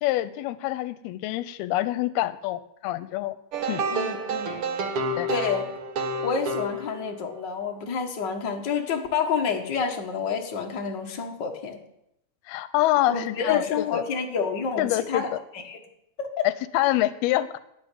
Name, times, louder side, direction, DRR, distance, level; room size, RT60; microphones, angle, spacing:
voice 1, 0.0-3.4 3.7-3.8 5.2-5.3 12.5-14.0 14.8-15.4 16.4-17.6, left 15 dB, 85° left, 15 dB, 2.6 m, -26 dB
sound 1, 3.5-7.3, right 2 dB, 60° right, 1.4 m, -29 dB
voice 2, 3.7-4.6 5.3-5.7 6.2-11.8 13.1-15.8 16.2-16.5, left 6 dB, 45° left, 3 dB, 1.5 m, -29 dB
13.0 x 9.9 x 9.3 m, 0.82 s
omnidirectional pair, 4.4 m